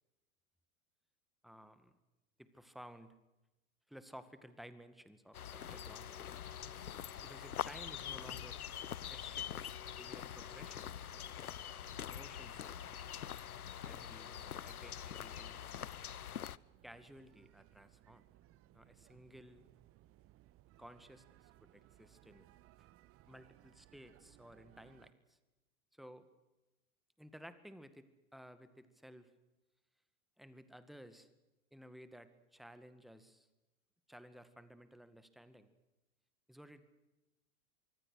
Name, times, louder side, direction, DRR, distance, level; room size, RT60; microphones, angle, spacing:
voice 1, 1.4-1.9 2.4-3.2 3.9-6.1 7.2-8.6 9.1-11.0 12.1-12.8 13.8-15.6 16.8-18.2 18.7-19.7 20.8-22.5 22.8-22.9 23.3-25.4 25.9-26.3 27.2-29.3 30.4-31.3 31.7-33.5 34.1-35.7 36.5-36.8, equal, ahead, 12 dB, 2.0 m, -56 dB
sound 1, 5.3-16.6, left 9 dB, 80° left, 0.7 m, -44 dB
sound 2, 5.5-25.1, right 15 dB, 30° right, 1.1 m, -65 dB
24.5 x 24.5 x 6.5 m, 1.0 s
figure-of-eight pair, 90°, 43 cm